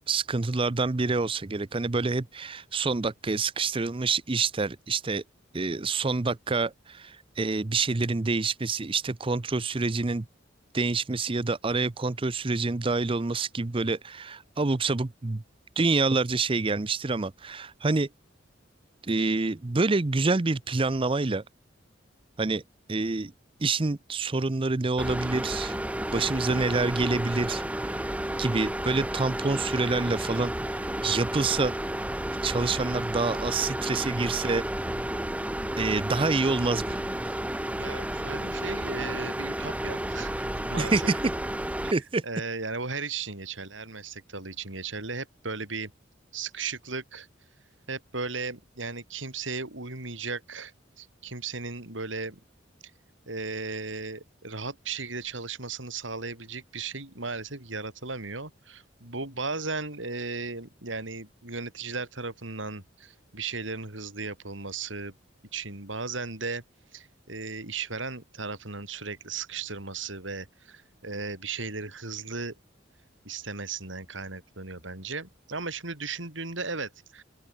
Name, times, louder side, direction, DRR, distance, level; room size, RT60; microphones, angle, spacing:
voice 1, 0.1-5.2 5.5-10.3 10.7-15.4 15.8-18.1 19.0-21.4 22.4-22.6 22.9-23.3 23.6-25.8 26.1-28.0 28.4-31.8 32.4-34.6 35.8-37.0 40.8-41.2 41.9-42.2, right 3 dB, 30° right, 0.6 m, -27 dB
sound 1, 25.0-41.9, right 1 dB, 5° right, 1.0 m, -32 dB
voice 2, 37.8-41.1 41.8-42.0 42.2-45.9 46.3-47.3 47.9-52.4 53.3-65.1 65.5-66.6 66.9-72.5 73.2-77.2, right 4 dB, 80° right, 4.8 m, -36 dB
open air
head